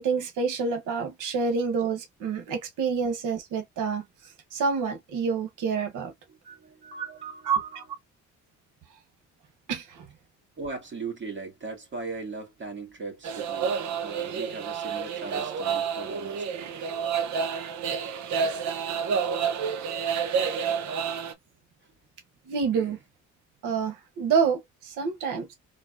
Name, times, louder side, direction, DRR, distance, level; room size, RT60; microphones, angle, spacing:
voice 1, 0.0-4.0 4.5-6.1 7.0-7.1 7.4-7.6 9.7-10.0 22.5-23.0 23.6-25.5, right 5 dB, 85° right, 1.0 m, -27 dB
voice 2, 6.3-7.8 10.6-17.0 22.7-23.0, right 4 dB, 40° right, 2.0 m, -39 dB
sound 1, 13.2-21.3, right 6 dB, 70° right, 0.8 m, -29 dB
3.9 x 2.6 x 2.5 m
cardioid pair, 90°, 30 cm